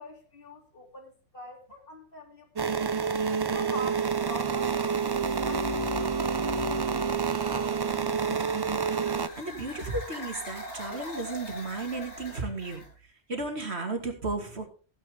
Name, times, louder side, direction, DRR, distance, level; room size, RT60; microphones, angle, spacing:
voice 1, 0.0-3.0 3.5-8.3, left 1 dB, 50° left, 3.3 m, -45 dB
sound 1, 2.6-9.3, right 5 dB, 35° right, 0.4 m, -28 dB
sound 2, 3.5-9.0, left 1 dB, 5° right, 2.4 m, -49 dB
sound 3, 7.7-12.9, left 1 dB, 80° left, 6.4 m, -43 dB
voice 2, 9.4-12.8 13.3-14.7, right 3 dB, 65° right, 2.7 m, -34 dB
15.5 x 9.5 x 3.6 m
omnidirectional pair, 1.2 m